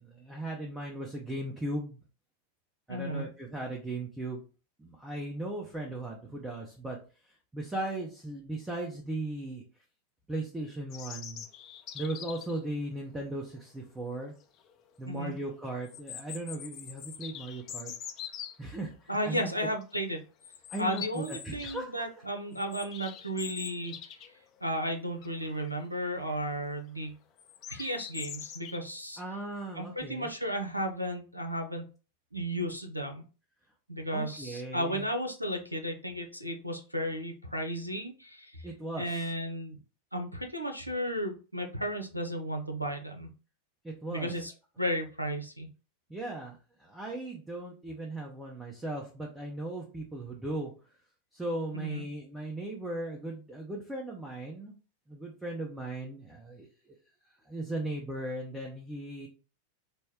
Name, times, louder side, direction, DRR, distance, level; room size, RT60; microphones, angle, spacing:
voice 1, 0.0-2.0 2.9-4.5 4.8-7.0 7.5-9.6 10.3-11.5 11.9-14.3 15.0-17.9 18.6-19.5 20.7-21.9 29.2-30.3 34.1-35.1 38.6-39.3 43.8-44.3 46.1-50.7 51.3-54.8 55.1-56.7 57.5-59.3, right 1 dB, 10° right, -2 dB, 0.8 m, -37 dB
voice 2, 2.9-3.3 15.1-15.3 19.1-20.2 20.8-23.9 24.6-27.1 27.7-29.2 29.8-31.8 32.3-33.2 33.9-38.7 39.0-39.8 40.1-43.3 44.1-44.5 44.8-45.7 51.7-52.0, equal, 90° right, 3 dB, 0.6 m, -34 dB
sound 1, 10.9-12.6 14.2-14.3 14.6-14.7 15.8-18.5 19.2-19.5 19.8-19.9 20.4-21.8 22.1-24.4 24.7-24.8 25.2-25.7 26.2-26.5 27.4-28.8, left 9 dB, 35° left, 0.6 m, -43 dB
4.1 x 2.2 x 3.5 m, 0.35 s
figure-of-eight pair, 90°, 0 cm